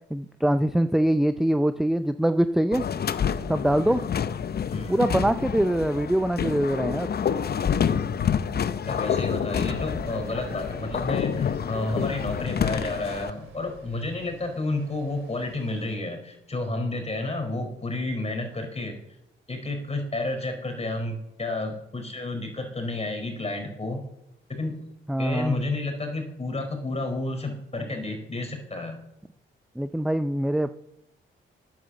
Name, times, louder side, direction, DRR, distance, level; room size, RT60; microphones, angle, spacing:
voice 1, 0.1-2.8 3.5-4.0 4.9-7.1 9.6-9.7 25.1-25.6 29.8-30.7, right 1 dB, ahead, 11 dB, 0.5 m, -23 dB
sound 1, 2.7-13.3, left 7 dB, 50° left, 0.7 m, -28 dB
voice 2, 8.9-19.0 19.5-24.0 24.5-24.8 25.2-29.0, left 2 dB, 30° left, 5 dB, 4.4 m, -31 dB
Stream, 9.7-16.0, right 5 dB, 85° right, 2.5 m, -49 dB
9.5 x 9.4 x 7.1 m, 0.84 s
cardioid pair, 65°, 20 cm